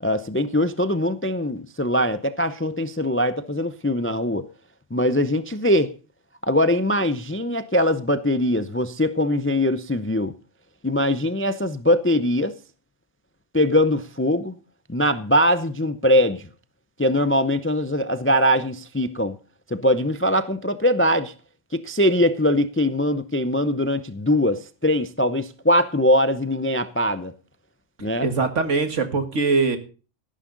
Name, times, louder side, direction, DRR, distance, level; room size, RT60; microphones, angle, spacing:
voice 1, 0.0-4.5 4.9-5.9 6.5-10.3 10.8-12.5 13.5-14.5 14.9-16.5 17.0-19.4 19.7-21.3 21.7-27.3 28.0-28.3, left 1 dB, 15° left, 0.4 m, -22 dB
voice 2, 28.0-29.8, right 4 dB, 70° right, 2.0 m, -22 dB
14.0 x 11.5 x 3.9 m
omnidirectional pair, 1.3 m